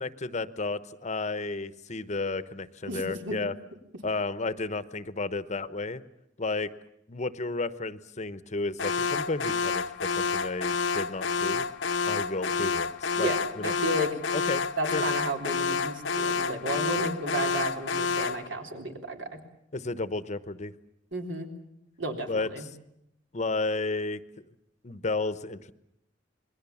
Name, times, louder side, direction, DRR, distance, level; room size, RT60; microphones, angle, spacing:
voice 1, 0.0-3.5 4.0-6.0 6.4-6.7 7.1-11.7 12.0-13.3 13.6-13.7 14.3-14.6 14.9-15.0 17.0-17.1 19.7-20.7 22.3-22.5 23.3-24.2 24.8-25.7, left 3 dB, 40° left, 14 dB, 0.9 m, -32 dB
voice 2, 2.9-3.4 13.2-14.1 14.8-19.4 21.1-21.5 22.0-22.7, right 1 dB, 75° right, 4 dB, 3.6 m, -33 dB
Alarm, 8.8-18.5, left 5 dB, 75° left, 0.9 m, -29 dB
27.5 x 21.5 x 7.2 m, 0.80 s
head